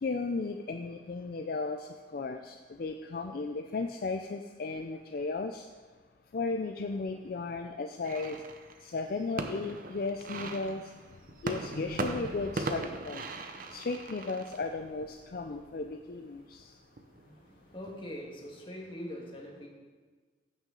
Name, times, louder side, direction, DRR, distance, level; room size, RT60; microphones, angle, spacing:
voice 1, 0.0-5.7 6.3-8.4 8.8-10.9 11.4-13.2 13.7-16.7, left 3 dB, 50° left, 5 dB, 0.4 m, -35 dB
sound 1, 8.0-18.2, right 2 dB, 45° right, 0.7 m, -40 dB
voice 2, 17.2-19.7, equal, 25° left, -1 dB, 1.6 m, -43 dB
14.5 x 6.3 x 3.8 m, 1.4 s
head